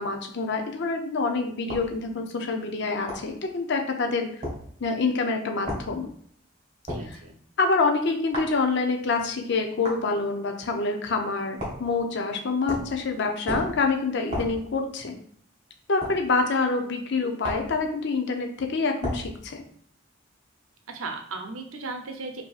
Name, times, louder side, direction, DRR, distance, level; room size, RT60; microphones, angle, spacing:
voice 1, 0.0-4.4 4.8-6.1 7.0-7.2 7.6-15.2 15.9-19.6, left 4 dB, 60° left, 4 dB, 0.5 m, -26 dB
sound 1, 1.7-1.9 3.1-3.3 4.4-4.6 5.7-5.9 6.9-7.1 8.3-8.6 9.8-10.0 11.6-11.9 12.7-13.0 13.5-13.8 14.3-14.6 16.0-16.2 17.4-17.7 19.0-19.3, equal, 35° right, 1.6 m, -32 dB
voice 2, 6.9-7.4 20.9-22.5, right 3 dB, 90° right, 4 dB, 0.7 m, -36 dB
5.2 x 2.7 x 2.4 m, 0.62 s
head